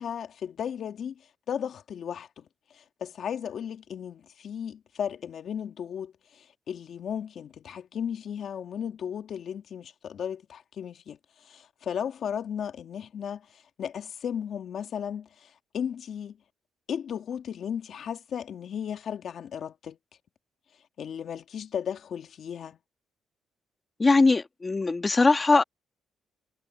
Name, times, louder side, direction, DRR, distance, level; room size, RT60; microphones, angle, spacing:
voice 1, 0.0-16.4 16.9-20.0 21.0-22.8, left 8 dB, 60° left, 2.0 m, -35 dB
voice 2, 24.0-25.6, left 3 dB, 25° left, 1.6 m, -21 dB
cardioid pair, 90°, 0 cm